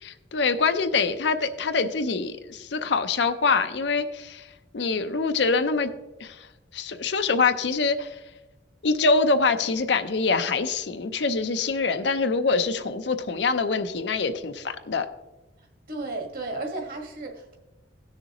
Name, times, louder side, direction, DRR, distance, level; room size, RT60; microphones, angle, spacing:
voice 1, 0.0-4.5 4.7-5.9 6.2-6.5 6.7-8.2 8.8-15.1, left 4 dB, 70° left, 9 dB, 0.6 m, -24 dB
voice 2, 15.6-17.6, right 2 dB, 50° right, 3 dB, 1.6 m, -34 dB
17.0 x 6.6 x 3.0 m, 1.1 s
head